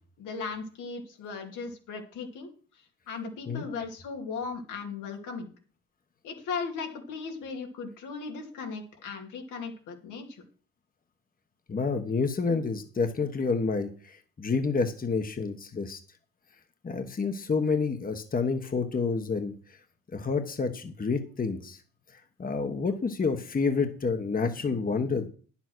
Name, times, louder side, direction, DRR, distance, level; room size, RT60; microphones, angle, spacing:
voice 1, 0.2-5.5 6.2-10.4, left 5 dB, 85° left, 2 dB, 2.7 m, -37 dB
voice 2, 11.7-16.0 16.8-19.5 20.1-21.8 22.1-25.3, left 4 dB, 30° left, 7 dB, 1.3 m, -29 dB
9.9 x 7.2 x 6.2 m, 0.41 s
cardioid pair, 90°, 30 cm